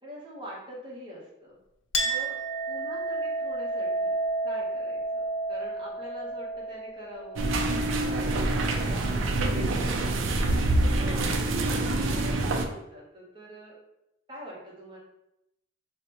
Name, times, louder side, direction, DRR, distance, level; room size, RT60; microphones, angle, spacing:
voice 1, 0.0-1.6 2.0-2.4 2.7-4.1 4.4-7.5 8.0-10.4 10.8-13.8 14.3-15.0, equal, 25° right, -4 dB, 0.9 m, -44 dB
Chink clink, 1.9-9.0, right 2 dB, 65° left, 0.4 m, -32 dB
sound 1, 7.4-12.7, right 2 dB, 75° right, 0.4 m, -26 dB
3.9 x 2.1 x 2.8 m, 0.87 s
head